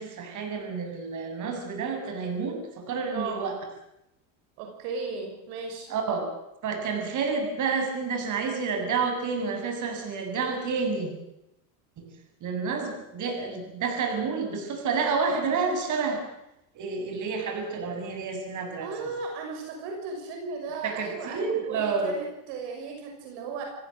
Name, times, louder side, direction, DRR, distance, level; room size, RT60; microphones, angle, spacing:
voice 1, 0.0-3.5 5.9-6.3 6.6-11.1 12.4-16.2 16.7-19.1 20.8-22.1, right 5 dB, 45° right, 5 dB, 7.5 m, -29 dB
voice 2, 3.1-3.4 4.6-5.9 18.8-23.7, right 4 dB, 75° right, 3 dB, 6.4 m, -36 dB
28.5 x 16.5 x 7.9 m, 0.87 s
supercardioid pair, 120°, 41 cm